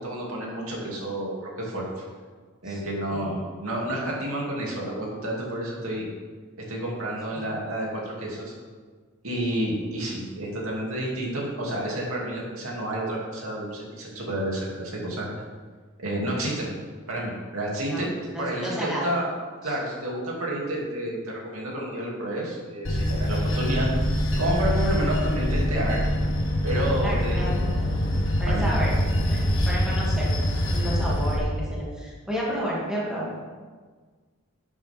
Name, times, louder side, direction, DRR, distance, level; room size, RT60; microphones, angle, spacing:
voice 1, 0.0-1.8 2.6-6.1 6.7-8.5 9.2-15.3 16.0-16.7 17.1-19.3 19.6-26.0 26.6-27.8 28.5-28.8, right 1 dB, 85° right, -3 dB, 2.6 m, -30 dB
voice 2, 18.3-19.1 19.6-19.7 27.0-27.7 28.4-28.9 29.2-30.3 30.7-33.3, equal, 5° right, -7 dB, 2.5 m, -31 dB
Bell / Train, 22.8-31.4, equal, 60° left, 1.4 m, -24 dB
11.5 x 8.1 x 3.6 m, 1.5 s
head